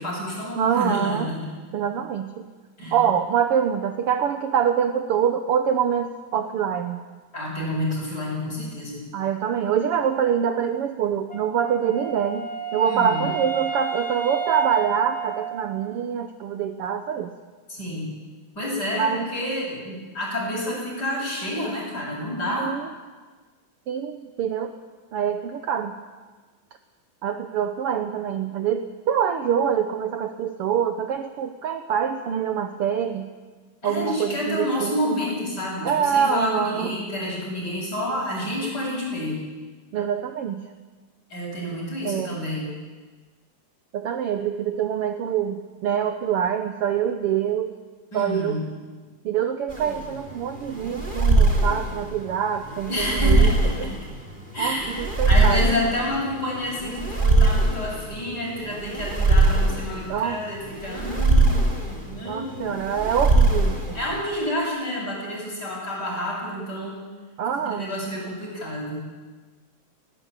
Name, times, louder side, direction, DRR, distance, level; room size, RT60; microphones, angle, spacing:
voice 1, 0.0-1.4 2.8-3.0 7.3-9.0 12.9-13.3 17.7-18.1 18.6-22.7 33.8-39.4 41.3-42.7 48.1-48.6 52.9-54.1 54.5-55.0 55.2-61.6 62.0-62.7 63.9-67.0 67.6-69.0, left 1 dB, 30° left, -3 dB, 8.7 m, -29 dB
voice 2, 0.6-1.3 1.7-2.5 2.9-7.0 9.1-17.3 18.9-19.3 22.6-22.9 23.9-24.7 25.1-26.0 27.2-33.3 33.8-35.1 35.8-36.9 39.9-40.6 42.0-42.3 43.9-47.7 48.1-48.6 49.3-53.5 53.8-53.9 54.6-55.7 60.1-60.4 62.3-64.0 67.4-67.9, right 8 dB, 65° right, 8 dB, 1.6 m, -25 dB
Wind instrument woodwind instrument, 11.3-16.1, right 6 dB, 55° left, 0.4 m, -31 dB
sound 1, 49.7-64.2, right 2 dB, 15° right, 3.4 m, -22 dB
20.0 x 18.0 x 9.0 m, 1.4 s
omnidirectional pair, 3.3 m